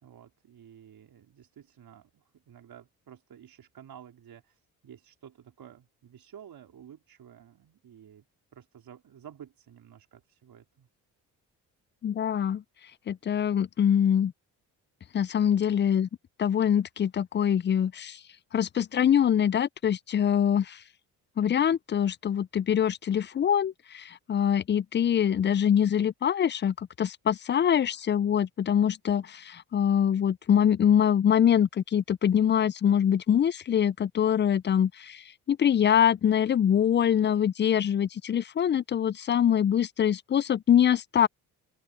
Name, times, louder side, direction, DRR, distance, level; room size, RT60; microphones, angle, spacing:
voice 1, 0.0-8.3 8.5-10.9, right 9 dB, 60° right, 4.2 m, -51 dB
voice 2, 12.0-12.6 13.1-14.3 15.1-16.1 16.4-18.2 18.5-20.8 21.4-41.3, left 9 dB, 30° left, 0.4 m, -24 dB
open air
supercardioid pair, 60°, 40 cm